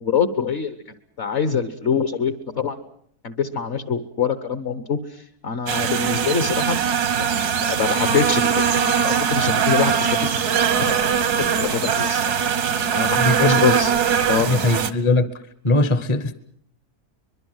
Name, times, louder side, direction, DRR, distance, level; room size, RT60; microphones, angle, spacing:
voice 1, 0.0-0.8 1.2-2.8 3.2-8.8 9.0-10.4 10.8-12.4 12.9-13.9 14.3-14.5, left 6 dB, 50° left, 1.4 m, -25 dB
sound 1, 5.7-14.9, right 7 dB, 80° right, 1.8 m, -21 dB
voice 2, 13.2-13.6 14.4-15.3 15.6-16.3, left 2 dB, 25° left, 0.9 m, -20 dB
23.5 x 22.5 x 7.9 m
omnidirectional pair, 1.6 m